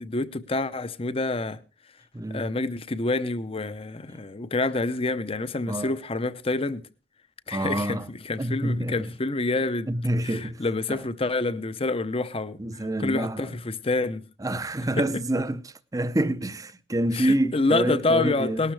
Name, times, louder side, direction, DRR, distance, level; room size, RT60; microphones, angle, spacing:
voice 1, 0.0-1.6 2.3-6.9 7.5-9.9 10.2-14.3 15.0-15.2 17.1-18.7, left 2 dB, 35° left, 0.8 m, -27 dB
voice 2, 2.1-2.5 4.1-4.2 5.7-5.9 7.5-8.1 8.4-9.1 9.9-10.6 10.9-11.0 12.6-13.6 14.4-18.6, right 1 dB, 20° right, 0.6 m, -27 dB
19.0 x 12.5 x 3.3 m
head